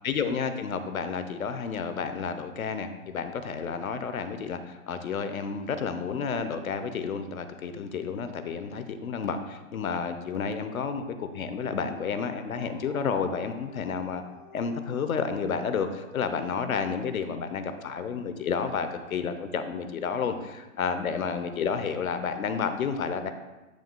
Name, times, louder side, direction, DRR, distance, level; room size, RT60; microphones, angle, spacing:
voice 1, 0.0-14.2 14.5-23.3, left 6 dB, 85° left, 9 dB, 0.9 m, -31 dB
Dog, 11.1-16.7, left 2 dB, 45° left, 1.8 m, -53 dB
10.0 x 6.2 x 2.3 m, 1.1 s
hypercardioid pair, 165°, 41 cm